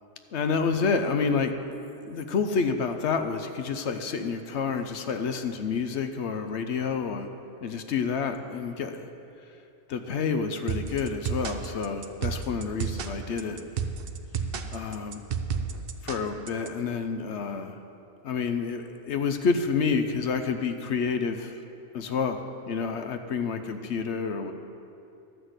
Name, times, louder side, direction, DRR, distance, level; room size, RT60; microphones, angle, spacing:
voice 1, 0.3-1.5 2.0-7.3 7.6-9.1 9.9-13.6 14.7-15.2 16.0-17.8 18.2-21.6 21.9-24.5, left 5 dB, 65° left, 8 dB, 1.0 m, -29 dB
sound 1, 10.7-16.7, right 6 dB, 55° right, 0.8 m, -32 dB
12.5 x 6.1 x 7.9 m, 2.8 s
omnidirectional pair, 1.3 m